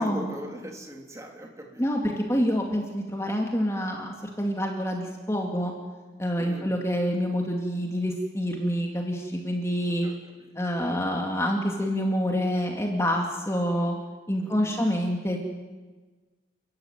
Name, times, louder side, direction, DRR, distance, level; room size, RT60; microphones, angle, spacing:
voice 1, 0.0-1.8 6.4-6.7 10.0-10.5 14.4-14.8, equal, 15° right, 1 dB, 3.2 m, -40 dB
voice 2, 1.8-5.7 6.2-10.1 10.6-13.9 14.3-15.4, equal, 15° left, 1 dB, 2.5 m, -27 dB
30.0 x 14.0 x 9.2 m, 1.3 s
head